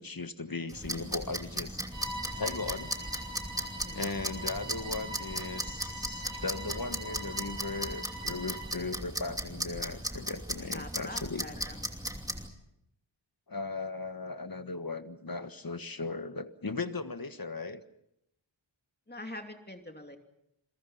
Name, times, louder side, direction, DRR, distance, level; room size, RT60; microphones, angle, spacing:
voice 1, 0.0-1.8 2.3-3.2 3.9-11.5 13.5-17.8, left 3 dB, 45° left, 10 dB, 1.5 m, -37 dB
sound 1, 0.7-12.5, right 1 dB, 5° right, 2.8 m, -37 dB
Bowed string instrument, 1.9-8.9, right 1 dB, 65° right, 5.0 m, -43 dB
voice 2, 3.7-4.0 10.7-11.8 19.1-20.2, left 1 dB, 20° left, 4 dB, 2.9 m, -44 dB
29.0 x 22.0 x 5.7 m, 0.79 s
wide cardioid pair, 70°, 47 cm